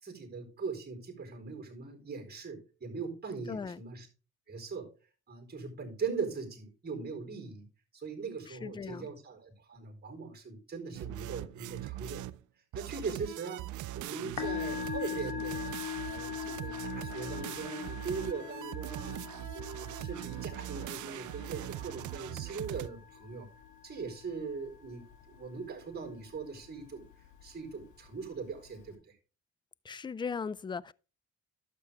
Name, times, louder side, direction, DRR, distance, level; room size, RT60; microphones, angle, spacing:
voice 1, 0.0-4.1 4.5-4.9 5.3-7.7 7.9-12.3 12.7-13.7 13.9-15.6 16.0-19.2 19.5-23.5 23.8-27.0 27.4-29.0, right 5 dB, 35° right, 4.3 m, -40 dB
voice 2, 3.5-3.8 8.5-9.1 29.9-30.9, left 5 dB, 15° left, 0.3 m, -38 dB
sound 1, 10.9-12.4 12.7-22.9, right 15 dB, 75° right, 0.5 m, -41 dB
Musical instrument, 14.2-28.9, left 8 dB, 75° left, 2.0 m, -43 dB
11.5 x 6.9 x 3.5 m
cardioid pair, 90°, 30 cm